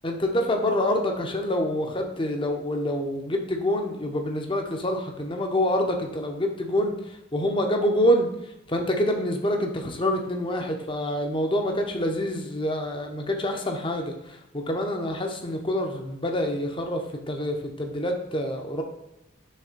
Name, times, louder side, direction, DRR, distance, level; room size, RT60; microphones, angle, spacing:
voice 1, 0.0-7.0 7.3-8.3 8.7-14.1 14.5-17.0 17.3-18.8, left 1 dB, 25° left, 3 dB, 0.8 m, -26 dB
6.6 x 3.4 x 5.0 m, 0.89 s
head